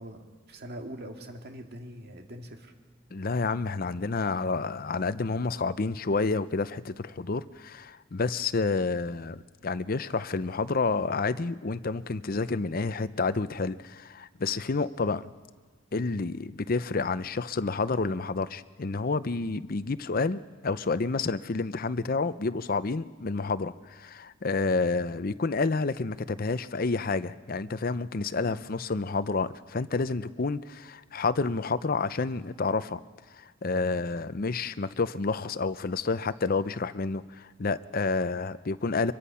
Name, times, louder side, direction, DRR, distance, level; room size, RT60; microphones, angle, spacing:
voice 1, 0.0-2.7 28.4-28.6, equal, 50° right, 3 dB, 2.1 m, -43 dB
voice 2, 3.1-15.3 15.9-33.0 33.3-39.1, left 3 dB, 45° left, 13 dB, 0.6 m, -29 dB
24.5 x 23.0 x 5.7 m, 1.4 s
head